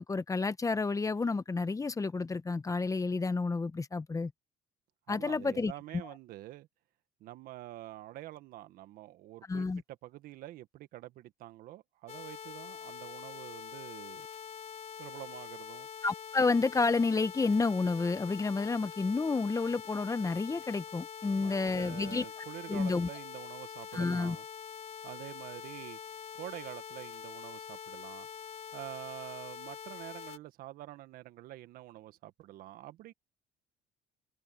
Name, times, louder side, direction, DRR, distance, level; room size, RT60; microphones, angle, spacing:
voice 1, 0.0-4.3 5.1-5.7 9.5-9.8 16.0-22.2 22.7-23.1 23.9-24.4, left 4 dB, 20° left, 1.2 m, -30 dB
voice 2, 5.1-6.7 7.2-9.7 10.0-14.3 15.0-15.9 21.3-24.5 25.0-28.3 28.7-33.1, right 15 dB, 70° right, 1.7 m, -47 dB
sound 1, 12.1-30.4, left 8 dB, 45° left, 3.8 m, -45 dB
supercardioid pair, 90°, 16 cm